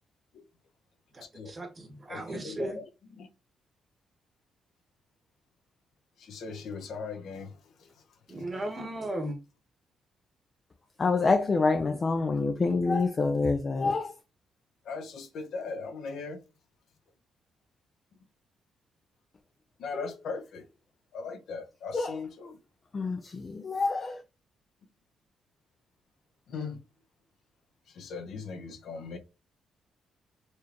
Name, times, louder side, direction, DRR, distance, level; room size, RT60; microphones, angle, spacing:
voice 1, 1.1-2.8 8.3-9.4, right 1 dB, 25° right, 1.2 m, -36 dB
voice 2, 2.1-2.8 3.2-3.3 6.2-8.1 14.8-16.4 19.8-20.7 21.1-22.6 26.5-26.8 27.9-29.2, left 4 dB, 70° left, 1.0 m, -39 dB
voice 3, 11.0-14.1 19.9-20.1 21.9-22.2 22.9-24.2, left 3 dB, 30° left, 0.5 m, -27 dB
4.4 x 3.2 x 2.9 m
cardioid pair, 140°, 0 cm